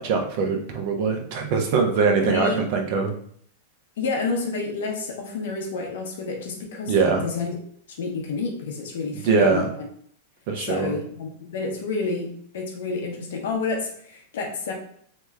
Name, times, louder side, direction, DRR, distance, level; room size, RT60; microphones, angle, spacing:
voice 1, 0.0-3.1 6.9-7.2 9.2-9.7 10.5-10.9, right 5 dB, 55° right, 3 dB, 0.7 m, -22 dB
voice 2, 2.2-2.6 4.0-7.6 8.0-9.9 10.6-14.7, left 4 dB, 75° left, 1 dB, 0.9 m, -29 dB
3.4 x 3.0 x 2.2 m, 0.63 s
supercardioid pair, 140°, 0 cm